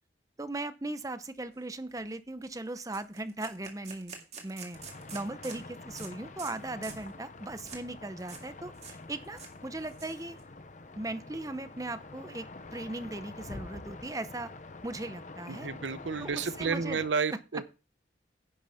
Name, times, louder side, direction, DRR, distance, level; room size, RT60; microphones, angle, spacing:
voice 1, 0.4-10.4 11.0-12.5 12.7-14.5 14.8-15.7 16.2-17.0 17.3-17.4, right 2 dB, 20° right, 0.7 m, -38 dB
sound 1, 1.5-1.7 2.0-2.1 2.4-2.6 2.9-5.6 6.0-6.1 6.4-6.6 6.8-7.1 7.6-7.8 8.2-8.5 8.7-9.0 9.2-10.4, right 5 dB, 35° right, 2.1 m, -46 dB
sound 2, 4.7-17.1, left 2 dB, 40° left, 0.8 m, -47 dB
voice 2, 15.5-17.6, right 5 dB, 85° right, 0.7 m, -31 dB
10.5 x 6.2 x 5.6 m
head